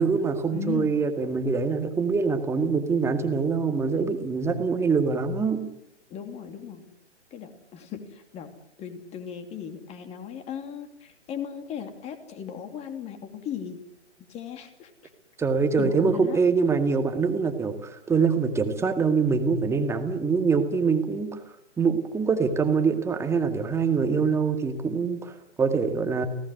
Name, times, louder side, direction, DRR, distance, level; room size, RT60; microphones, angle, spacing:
voice 1, 0.0-5.6 15.4-21.4 21.8-26.3, right 5 dB, 5° right, 6 dB, 2.0 m, -24 dB
voice 2, 0.5-1.0 6.1-6.9 7.3-8.5 8.8-13.8 14.3-14.9 15.8-16.4, left 8 dB, 20° left, 8 dB, 2.9 m, -37 dB
29.5 x 18.0 x 8.0 m, 0.77 s
figure-of-eight pair, 135°, 36 cm